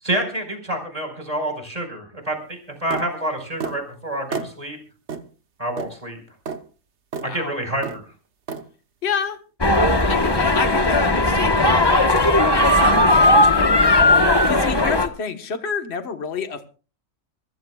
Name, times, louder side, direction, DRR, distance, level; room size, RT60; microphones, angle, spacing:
voice 1, 0.0-4.8 5.6-6.2 7.2-8.0, right 1 dB, 25° right, 5 dB, 4.8 m, -28 dB
sound 1, 2.9-3.1 3.6-3.8 4.3-4.5 5.1-5.2 5.8-5.9 6.5-6.6 7.1-7.3 7.8-8.0 8.5-8.6, right 5 dB, 55° right, 1.4 m, -30 dB
voice 2, 7.2-7.5 9.0-9.4 10.1-12.1 12.8-13.2 14.5-16.7, left 6 dB, 50° left, 7 dB, 1.6 m, -28 dB
sound 2, 9.6-15.1, left 1 dB, 20° left, 1.2 m, -17 dB
25.5 x 16.0 x 2.4 m, 0.36 s
omnidirectional pair, 1.4 m